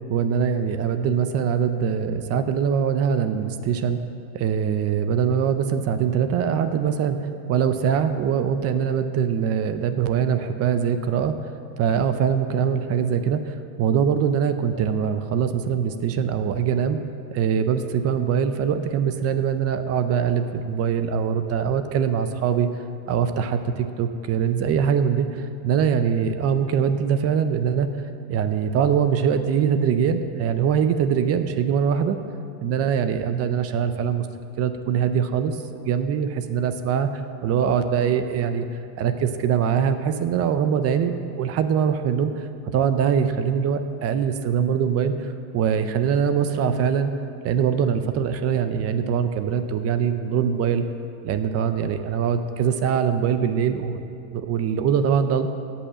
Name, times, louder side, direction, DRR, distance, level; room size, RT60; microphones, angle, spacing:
voice 1, 0.1-4.0 4.3-11.3 11.8-17.0 17.3-22.7 23.1-27.9 28.3-32.2 32.6-34.2 34.6-37.1 37.4-38.6 39.0-47.1 47.4-50.8 51.2-54.0 54.3-55.5, right 7 dB, 35° right, 9 dB, 0.5 m, -23 dB
17.0 x 5.6 x 7.4 m, 2.5 s
supercardioid pair, 145°, 45 cm